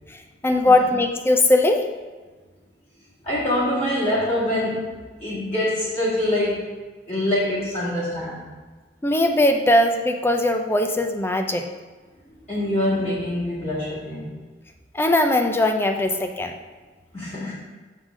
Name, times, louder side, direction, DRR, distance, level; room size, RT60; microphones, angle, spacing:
voice 1, 0.4-1.8 9.0-11.6 14.9-16.5, left 1 dB, 15° left, 4 dB, 0.5 m, -19 dB
voice 2, 3.2-6.7 7.1-8.5 12.5-14.3 17.1-17.5, left 1 dB, 40° left, -9 dB, 1.9 m, -25 dB
6.6 x 3.9 x 6.1 m, 1.4 s
head